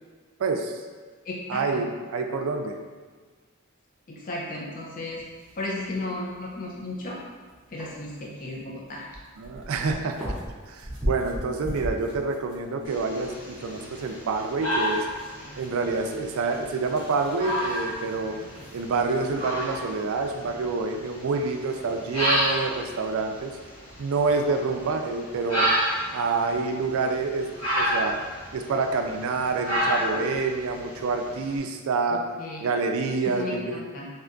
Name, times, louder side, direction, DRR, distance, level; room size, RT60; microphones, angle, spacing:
voice 1, 0.4-0.8 1.5-2.8 9.4-10.2 10.7-15.1 15.6-18.4 18.7-23.6 24.0-25.7 26.1-28.2 28.5-32.2 32.6-33.8, right 4 dB, 75° right, 4 dB, 0.3 m, -27 dB
voice 2, 1.3-1.8 4.1-5.2 5.5-7.2 7.7-9.1 32.1-32.7 33.3-34.1, left 2 dB, 40° left, -4 dB, 0.5 m, -34 dB
sound 1, 5.1-20.4, equal, 5° right, 0.7 m, -40 dB
sound 2, 12.9-31.6, equal, 85° left, 1.1 m, -31 dB
3.3 x 2.7 x 2.5 m, 1.5 s
head